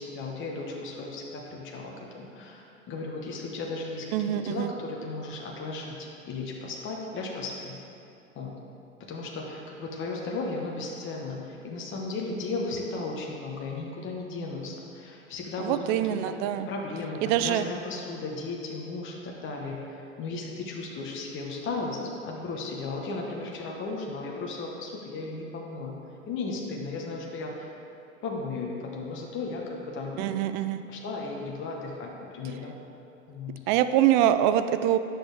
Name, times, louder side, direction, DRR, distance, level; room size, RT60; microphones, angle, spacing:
voice 1, 0.0-7.8 8.3-8.6 9.0-16.0 16.2-16.3 16.7-26.0 26.3-27.7 28.2-30.2 30.9-32.7 33.3-33.6, left 3 dB, 30° left, -1 dB, 1.2 m, -35 dB
voice 2, 4.1-4.7 15.6-16.7 17.2-17.6 30.2-30.8 33.7-35.0, right 12 dB, 40° right, 11 dB, 0.4 m, -24 dB
9.8 x 6.2 x 3.4 m, 2.9 s
hypercardioid pair, 105°, 40 cm